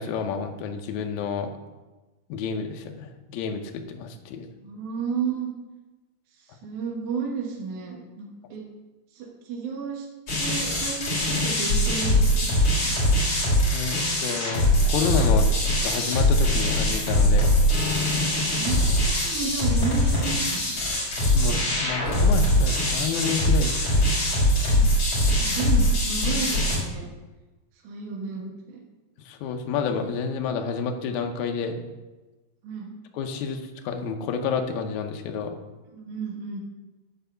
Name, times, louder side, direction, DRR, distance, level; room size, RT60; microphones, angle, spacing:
voice 1, 0.0-1.5 2.3-4.5 13.7-15.5 15.8-17.5 21.3-24.1 29.2-31.8 33.1-35.6, left 6 dB, 75° left, 4 dB, 1.8 m, -30 dB
voice 2, 4.6-5.5 6.6-8.6 9.1-10.1 10.4-12.9 18.5-20.7 24.7-24.9 25.4-27.1 27.8-28.8 32.6-32.9 35.9-36.6, right 5 dB, 60° right, -1 dB, 2.5 m, -32 dB
sound 1, 10.3-26.8, left 1 dB, 40° left, 4.2 m, -22 dB
9.1 x 4.7 x 6.7 m, 1.2 s
omnidirectional pair, 4.3 m